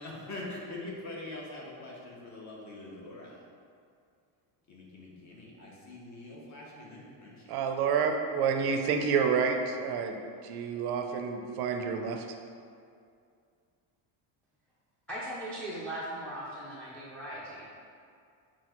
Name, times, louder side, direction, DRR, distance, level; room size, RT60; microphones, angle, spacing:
voice 1, 0.0-3.4 4.7-7.5, left 2 dB, 35° left, -3 dB, 0.9 m, -43 dB
voice 2, 7.5-10.2 10.4-12.2, right 6 dB, 50° right, 4 dB, 0.5 m, -29 dB
voice 3, 15.1-17.7, right 1 dB, 5° left, -9 dB, 0.4 m, -39 dB
5.7 x 2.4 x 2.9 m, 2.3 s
cardioid pair, 120°, 50 cm